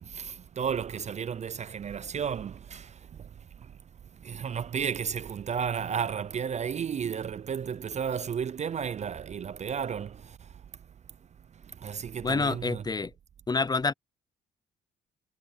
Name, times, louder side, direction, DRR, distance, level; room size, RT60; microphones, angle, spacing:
voice 1, 0.0-3.3 3.6-3.7 4.2-10.5 11.7-12.8, right 7 dB, 35° right, 0.4 m, -33 dB
voice 2, 12.2-13.1 13.5-13.9, left 4 dB, 20° left, 0.5 m, -27 dB
cardioid pair, 90°, 20 cm